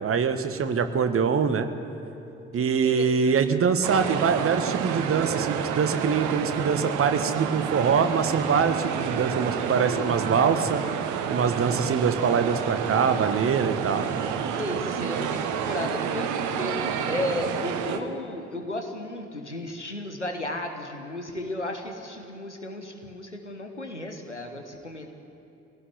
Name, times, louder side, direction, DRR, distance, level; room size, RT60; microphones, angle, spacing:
voice 1, 0.0-1.7 2.5-10.8 11.3-14.1, right 6 dB, 40° right, 9 dB, 1.7 m, -24 dB
voice 2, 2.6-3.7 14.5-25.1, left 1 dB, 90° left, 4 dB, 1.4 m, -34 dB
sound 1, 3.8-18.0, right 8 dB, 60° right, 1.5 m, -29 dB
24.5 x 17.5 x 9.6 m, 2.9 s
figure-of-eight pair, 45°, 34 cm